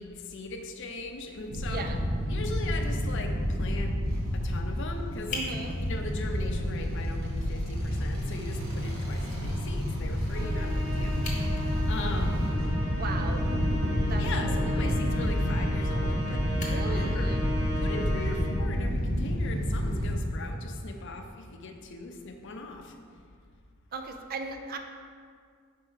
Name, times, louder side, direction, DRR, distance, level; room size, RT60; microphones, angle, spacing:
voice 1, 0.0-1.9 2.3-3.9 4.3-5.4 5.8-11.2 11.9-12.5 14.2-16.5 16.9-17.3 17.8-22.9, left 3 dB, 60° left, 4 dB, 0.6 m, -39 dB
sound 1, 1.5-20.1, equal, 65° right, 1.5 m, -29 dB
Fire, 5.0-5.1 5.3-7.2 7.6-7.7 8.1-8.2 8.5-8.6 10.7-10.8 11.1-12.9 15.7-16.2 16.6-18.8 20.1-20.3, left 1 dB, 35° left, 1.0 m, -38 dB
voice 2, 5.3-5.7 12.9-13.4 14.1-14.6 14.8-15.0 16.6-17.4 23.9-24.8, right 4 dB, 45° right, 5 dB, 0.5 m, -37 dB
Musical instrument, 10.3-18.8, left 1 dB, 15° right, 1.1 m, -37 dB
4.6 x 4.5 x 5.6 m, 2.1 s
head